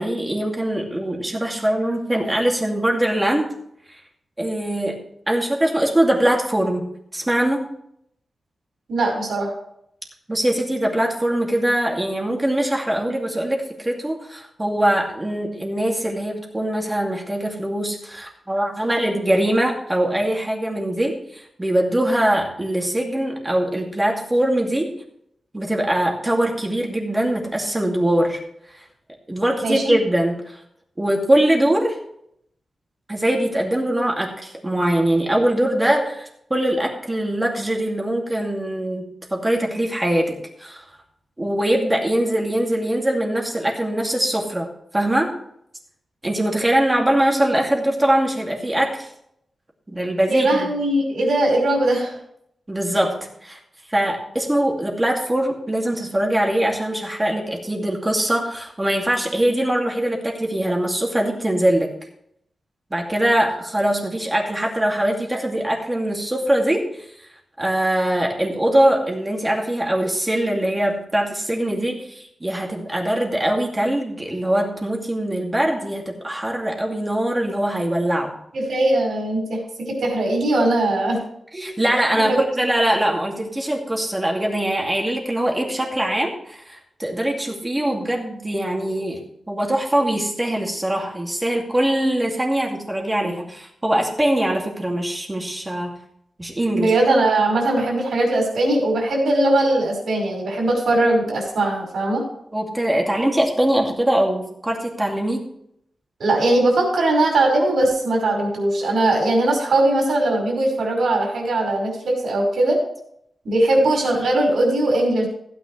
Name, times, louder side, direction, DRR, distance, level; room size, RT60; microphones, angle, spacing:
voice 1, 0.0-3.5 3.9-4.0 4.4-7.7 10.3-24.9 25.5-28.4 29.3-30.6 31.0-32.0 33.1-40.8 41.4-44.7 44.9-45.3 46.2-49.1 49.9-50.7 52.7-53.6 53.9-61.9 62.9-67.1 67.6-78.3 81.5-96.0 96.4-96.9 102.5-105.5, right 1 dB, 15° right, -1 dB, 2.5 m, -22 dB
voice 2, 8.9-9.5 29.6-29.9 50.3-52.1 78.5-79.6 79.9-81.2 96.7-102.2 106.2-112.8 113.4-115.3, right 2 dB, 85° right, 0 dB, 5.5 m, -20 dB
16.0 x 9.4 x 3.3 m, 0.71 s
wide cardioid pair, 125°, 0 cm